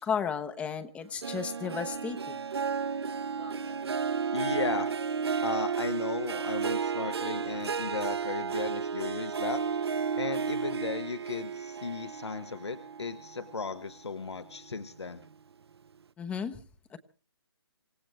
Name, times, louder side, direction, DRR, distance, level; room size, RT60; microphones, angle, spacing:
voice 1, 0.0-2.2 16.2-16.6 16.9-17.0, left 7 dB, 10° left, 10 dB, 0.8 m, -33 dB
Harp, 1.2-13.9 14.4-14.8 15.2-15.3, right 6 dB, 65° right, 1.0 m, -33 dB
voice 2, 3.4-4.0 4.3-5.0 5.4-9.7 10.2-15.2, left 4 dB, 85° left, 9 dB, 1.4 m, -36 dB
27.0 x 16.5 x 3.2 m, 0.38 s
hypercardioid pair, 150°, 14 cm